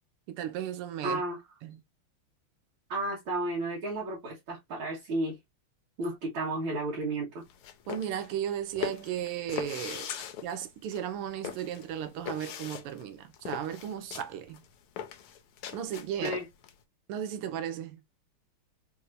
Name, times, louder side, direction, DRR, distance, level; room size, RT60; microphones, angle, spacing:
voice 1, 0.3-1.2 1.6-1.8 7.9-10.1 10.4-14.6 15.7-16.4 17.1-18.0, right 9 dB, 90° right, 1.7 m, -35 dB
voice 2, 1.0-1.4 2.9-5.4 6.0-7.4 16.2-16.5, right 2 dB, 65° right, 2.2 m, -32 dB
sound 1, 7.4-16.7, left 9 dB, 85° left, 1.6 m, -40 dB
4.6 x 2.8 x 2.5 m
omnidirectional pair, 2.4 m